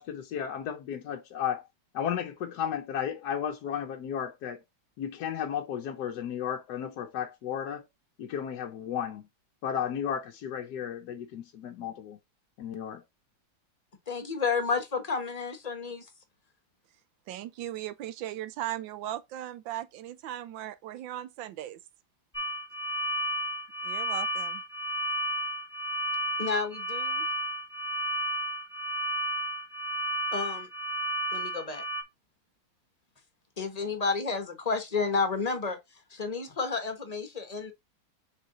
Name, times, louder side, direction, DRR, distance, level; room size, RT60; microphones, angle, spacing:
voice 1, 0.0-1.7 1.9-4.6 5.0-7.9 8.2-9.3 9.6-12.2 12.6-13.0, left 9 dB, 65° left, 1.1 m, -34 dB
voice 2, 14.1-16.0 26.4-27.2 30.3-30.7 31.3-31.8 33.6-35.8 36.1-37.7, left 4 dB, 25° left, 1.1 m, -31 dB
voice 3, 17.3-21.8 23.8-24.6, right 13 dB, 80° right, 1.4 m, -38 dB
sound 1, 22.3-32.0, right 1 dB, ahead, 2.1 m, -32 dB
6.3 x 3.9 x 4.1 m
omnidirectional pair, 2.1 m